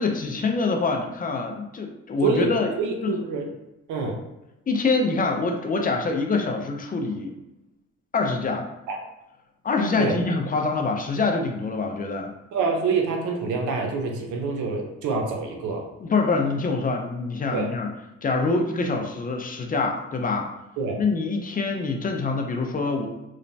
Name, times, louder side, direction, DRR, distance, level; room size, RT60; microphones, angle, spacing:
voice 1, 0.0-2.7 3.0-3.1 4.7-7.3 8.1-8.7 9.6-12.3 16.0-17.9 18.2-20.5 21.0-23.1, left 3 dB, 30° left, 3 dB, 0.4 m, -25 dB
voice 2, 2.2-3.5 3.9-4.2 8.9-9.0 10.0-10.2 12.5-15.9 17.5-17.7 20.8-21.0, right 4 dB, 85° right, 2 dB, 0.6 m, -26 dB
3.0 x 2.1 x 2.6 m, 0.96 s
cardioid pair, 90°, 30 cm